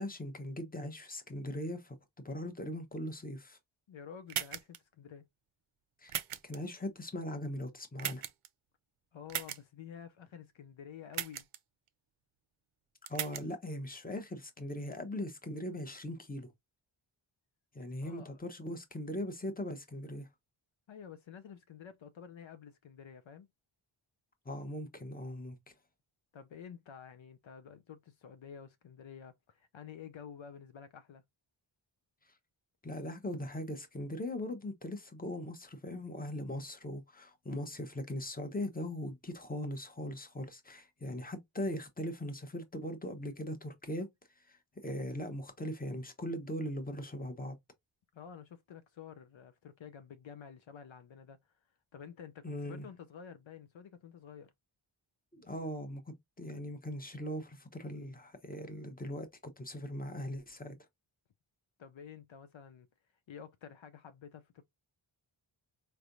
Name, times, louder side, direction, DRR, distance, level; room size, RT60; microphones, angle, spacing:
voice 1, 0.0-2.0 2.2-3.6 6.0-8.2 13.1-16.5 17.7-20.3 24.4-25.6 32.2-32.3 32.8-44.1 44.4-47.6 52.4-52.8 55.3-60.8, left 1 dB, 15° left, 1.0 m, -40 dB
voice 2, 3.9-5.3 9.1-11.4 18.0-18.3 20.9-23.5 26.3-31.2 48.1-51.6 51.9-54.5 61.8-62.9 63.3-64.6, left 8 dB, 65° left, 0.7 m, -50 dB
sound 1, 4.3-4.8 6.1-6.6 8.0-8.5 9.3-9.6 11.1-11.6 13.1-13.4, right 10 dB, 85° right, 0.7 m, -37 dB
4.5 x 3.3 x 2.6 m
wide cardioid pair, 150°, 50 cm